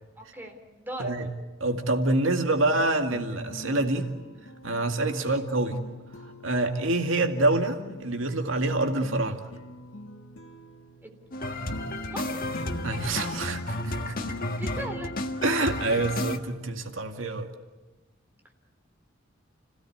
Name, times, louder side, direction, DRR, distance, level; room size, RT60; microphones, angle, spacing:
voice 1, 0.2-1.1 5.2-5.4 11.0-11.2 12.1-12.4 14.5-15.1, equal, 10° right, 3 dB, 3.8 m, -39 dB
voice 2, 1.6-4.1 4.6-5.8 6.4-9.5 12.8-14.1 15.4-17.5, right 2 dB, 85° right, 5 dB, 2.1 m, -26 dB
sound 1, 3.1-7.1 7.4-16.3, left 1 dB, 75° left, 2.0 m, -44 dB
sound 2, 11.3-16.4, left 1 dB, 50° left, 1.7 m, -32 dB
30.0 x 17.5 x 9.4 m, 1.2 s
head